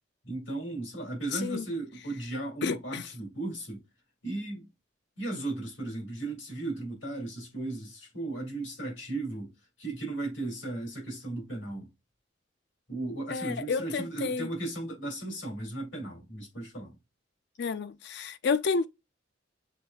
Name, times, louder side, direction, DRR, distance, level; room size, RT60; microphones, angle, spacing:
voice 1, 0.2-3.8 4.2-4.7 5.2-9.5 9.8-11.9 12.9-17.0, right 2 dB, 75° left, 2.3 m, -36 dB
voice 2, 1.3-1.7 2.6-3.1 13.3-14.5 17.6-18.9, left 5 dB, 55° left, 0.4 m, -30 dB
6.5 x 3.2 x 2.3 m
head